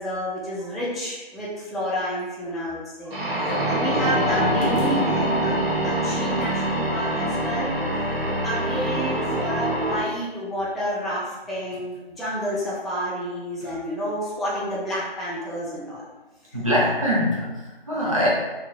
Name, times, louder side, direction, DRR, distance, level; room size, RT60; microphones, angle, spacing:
voice 1, 0.0-3.2 3.7-7.7 8.4-16.0, equal, ahead, -8 dB, 0.3 m, -30 dB
sound 1, 3.1-10.0, right 1 dB, 75° right, 1.0 m, -24 dB
sound 2, 3.5-3.7 4.6-5.1 6.4-6.7 11.7-12.0 13.6-13.9, equal, 40° left, 0.6 m, -37 dB
voice 2, 16.5-18.3, equal, 35° right, -6 dB, 0.6 m, -24 dB
2.7 x 2.6 x 2.2 m, 1.1 s
figure-of-eight pair, 170°, 31 cm